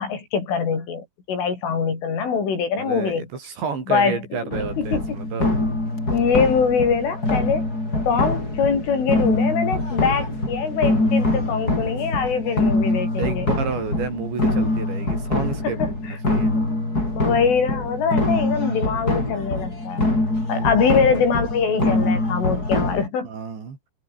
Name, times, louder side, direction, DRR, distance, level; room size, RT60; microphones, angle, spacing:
voice 1, 0.0-3.3 3.9-4.2 4.8-5.2 6.1-7.7 8.1-13.5 15.6-15.9 17.2-20.1 20.5-23.3, left 6 dB, 70° left, 8.3 m, -23 dB
voice 2, 2.8-5.5 10.3-10.4 11.7-12.1 13.2-16.6 20.5-20.7 23.2-23.8, right 5 dB, 60° right, 7.7 m, -31 dB
sound 1, 4.5-23.1, left 2 dB, 15° left, 7.6 m, -24 dB
omnidirectional pair, 5.9 m